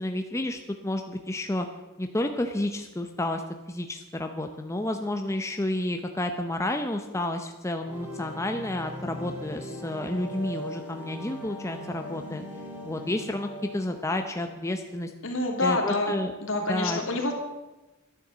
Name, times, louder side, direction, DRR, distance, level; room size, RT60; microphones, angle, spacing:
voice 1, 0.0-1.7 2.0-3.4 3.7-12.4 12.8-15.1 15.6-16.3 16.7-17.0, left 1 dB, 15° left, 5 dB, 0.7 m, -30 dB
sound 1, 7.8-14.7, equal, 10° right, 3.6 m, -40 dB
voice 2, 15.2-16.2 16.4-17.3, left 2 dB, 65° left, 1 dB, 2.7 m, -27 dB
11.5 x 10.5 x 7.4 m, 1.1 s
head